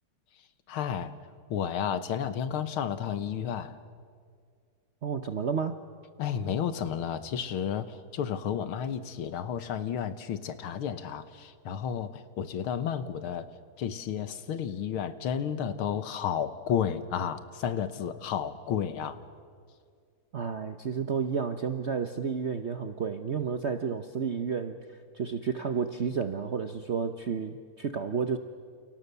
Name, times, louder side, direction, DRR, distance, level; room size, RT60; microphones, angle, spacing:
voice 1, 0.7-1.1 1.5-3.8 6.2-13.5 13.8-19.2, left 8 dB, 85° left, 12 dB, 2.0 m, -32 dB
voice 2, 5.0-5.8 20.3-24.8 25.1-28.4, right 6 dB, 55° right, 8 dB, 0.7 m, -31 dB
29.5 x 28.5 x 6.8 m, 2.1 s
omnidirectional pair, 2.3 m